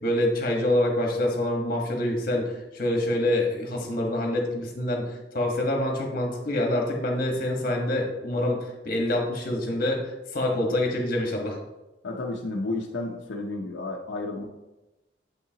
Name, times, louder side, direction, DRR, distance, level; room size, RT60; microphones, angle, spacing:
voice 1, 0.0-11.6, left 1 dB, 50° left, 1 dB, 1.4 m, -26 dB
voice 2, 12.0-14.5, left 2 dB, 80° left, -1 dB, 0.7 m, -32 dB
7.7 x 5.6 x 2.8 m, 1.0 s
head